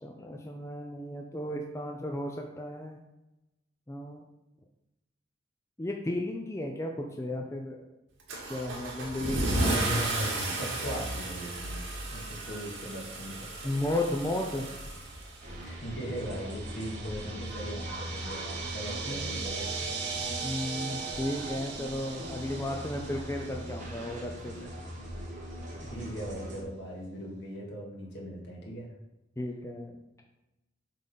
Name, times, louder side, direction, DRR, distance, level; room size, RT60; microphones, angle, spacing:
voice 1, 0.0-3.0 3.9-4.2 5.8-7.8 8.5-10.2 13.6-14.7 19.1-19.3 20.4-24.7 29.4-30.0, left 1 dB, 15° left, 1 dB, 0.5 m, -34 dB
Car / Engine starting / Accelerating revving vroom, 8.3-15.6, right 1 dB, 80° right, 2.0 m, -33 dB
voice 2, 9.8-10.3 10.5-11.8 12.1-13.7 15.6-19.8 25.9-28.9, equal, 60° left, -2 dB, 2.0 m, -40 dB
sound 1, 14.5-24.3, right 5 dB, 65° right, 1.4 m, -41 dB
sound 2, 15.4-26.6, right 1 dB, 40° right, 1.4 m, -40 dB
7.6 x 3.8 x 5.6 m, 0.96 s
head